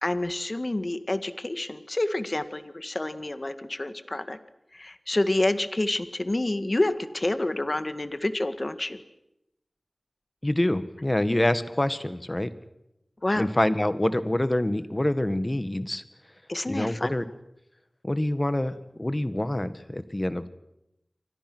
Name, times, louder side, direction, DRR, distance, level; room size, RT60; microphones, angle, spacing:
voice 1, 0.0-4.4 4.7-9.0 13.2-13.5 16.5-17.1, left 1 dB, 45° left, 11 dB, 1.8 m, -28 dB
voice 2, 10.4-12.5 13.4-16.0 16.7-17.3 18.0-20.5, left 1 dB, 25° left, 12 dB, 1.7 m, -26 dB
29.5 x 24.5 x 6.3 m, 0.86 s
wide cardioid pair, 50°, 0 cm